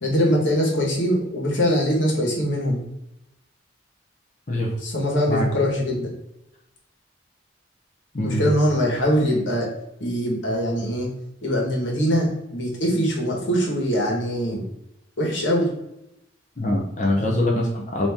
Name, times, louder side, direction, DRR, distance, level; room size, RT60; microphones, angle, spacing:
voice 1, 0.0-2.8 4.8-6.1 8.2-9.7 10.0-11.1 11.4-14.6 15.2-15.7 17.2-17.4, equal, 85° left, -2 dB, 1.4 m, -22 dB
voice 2, 8.1-8.5 16.6-18.1, left 1 dB, 40° left, -2 dB, 0.7 m, -23 dB
4.2 x 2.9 x 3.5 m, 0.85 s
head